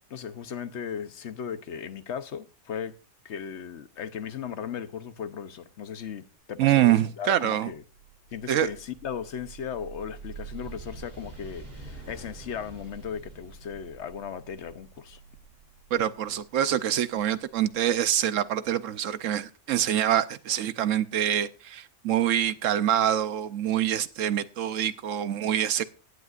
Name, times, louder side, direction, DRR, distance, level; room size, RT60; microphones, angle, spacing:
voice 1, 0.0-2.9 3.2-7.8 8.3-15.2, left 7 dB, 70° left, 1.1 m, -37 dB
voice 2, 6.6-7.7 8.5-8.7 15.9-25.8, right 11 dB, 90° right, 1.1 m, -25 dB
sound 1, 7.9-17.9, right 4 dB, 50° right, 3.7 m, -47 dB
17.0 x 11.0 x 2.5 m
omnidirectional pair, 1.3 m